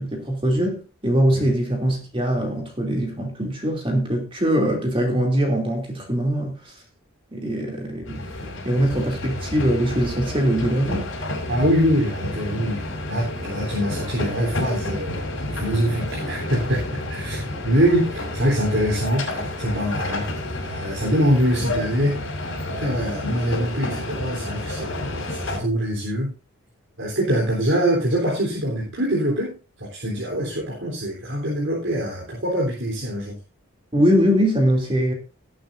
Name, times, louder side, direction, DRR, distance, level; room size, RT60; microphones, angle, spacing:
voice 1, 0.0-6.8 7.3-8.2 8.6-11.1 33.9-35.1, equal, 25° right, 3.0 m, -22 dB
Interior Steam Train Between Carriages, 8.1-25.6, left 1 dB, 65° left, 5.3 m, -30 dB
voice 2, 11.5-20.2 20.6-22.2 22.8-26.3 27.0-33.4, equal, 60° right, 3.7 m, -24 dB
18.5 x 8.8 x 2.7 m
head